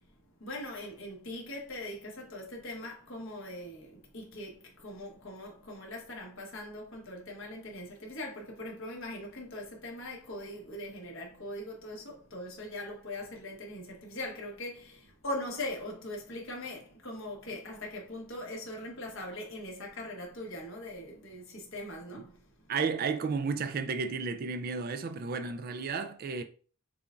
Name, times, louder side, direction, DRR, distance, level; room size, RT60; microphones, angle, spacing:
voice 1, 0.4-22.4, left 1 dB, 60° left, 1.3 m, -41 dB
voice 2, 22.7-26.4, right 5 dB, 40° right, 0.3 m, -32 dB
6.7 x 2.4 x 2.5 m
head